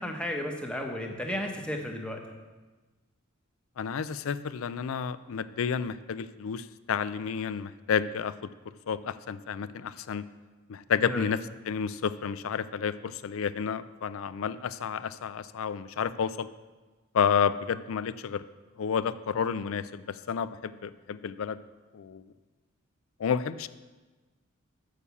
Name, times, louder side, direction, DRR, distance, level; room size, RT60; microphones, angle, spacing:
voice 1, 0.0-2.2 11.0-11.3, left 1 dB, 5° left, 2 dB, 0.9 m, -33 dB
voice 2, 3.8-8.3 8.9-10.2 10.7-11.4 11.7-16.5 17.1-18.4 18.8-21.6 21.9-22.2 23.2-23.7, left 7 dB, 70° left, 15 dB, 0.4 m, -30 dB
6.9 x 6.6 x 6.9 m, 1.3 s
head